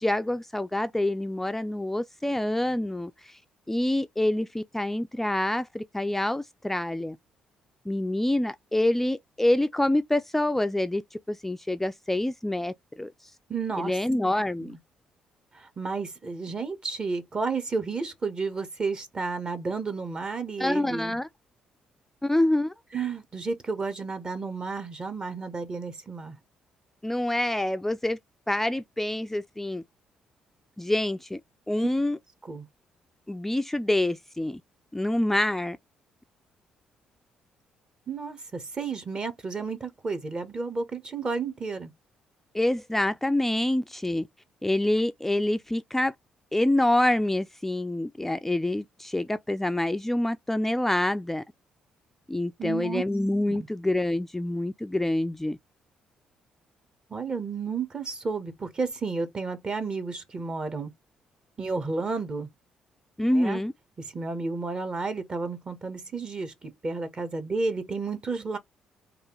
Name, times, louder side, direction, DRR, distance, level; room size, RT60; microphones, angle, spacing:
voice 1, 0.0-3.4 3.7-7.2 7.9-11.0 11.3-13.3 13.8-14.8 20.6-21.3 22.2-22.7 27.0-28.2 28.5-29.8 30.8-31.4 31.7-32.2 33.3-34.6 34.9-35.8 42.5-44.3 44.6-46.1 46.5-51.4 52.3-55.6 63.2-63.7, left 1 dB, 10° left, 0.3 m, -26 dB
voice 2, 13.5-13.9 14.6-14.8 15.5-21.2 22.9-26.4 32.5-32.7 38.1-41.9 52.6-53.0 53.5-53.7 57.1-60.9 61.6-62.5 63.3-63.6 64.1-68.6, right 4 dB, 35° right, 1.1 m, -32 dB
3.3 x 2.4 x 3.0 m
hypercardioid pair, 45°, 3 cm